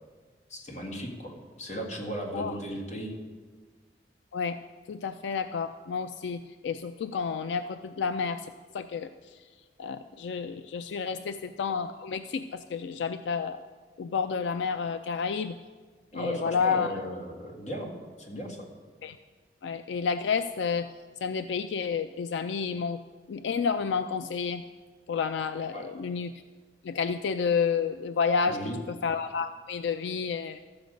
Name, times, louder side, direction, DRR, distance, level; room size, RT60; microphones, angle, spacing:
voice 1, 0.5-3.1 11.1-11.2 16.1-18.7 25.7-25.9 28.5-28.8, equal, 40° left, 0 dB, 1.7 m, -36 dB
voice 2, 4.9-8.4 8.7-9.1 9.8-13.6 14.0-15.5 16.1-16.9 19.0-19.1 19.6-20.9 21.2-23.0 23.3-24.6 25.1-26.3 26.8-28.6 29.0-30.6, left 5 dB, 80° left, 10 dB, 0.4 m, -30 dB
13.0 x 7.9 x 5.1 m, 1.5 s
head